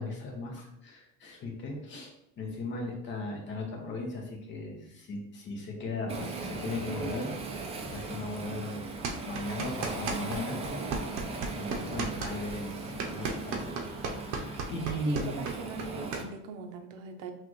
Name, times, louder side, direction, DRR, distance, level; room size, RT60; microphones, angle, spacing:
voice 1, 0.0-7.6 7.9-8.9 9.2-10.6 11.5-13.7 14.0-15.4, left 2 dB, 35° left, 1 dB, 0.9 m, -37 dB
Waves surf, 6.1-16.2, right 3 dB, 20° right, 0.4 m, -38 dB
sound 1, 9.0-10.4 10.6-16.2, right 4 dB, 60° right, 0.7 m, -34 dB
voice 2, 15.1-17.3, right 5 dB, 90° right, 5 dB, 0.7 m, -41 dB
5.9 x 2.5 x 3.0 m, 0.81 s
cardioid pair, 175°, 32 cm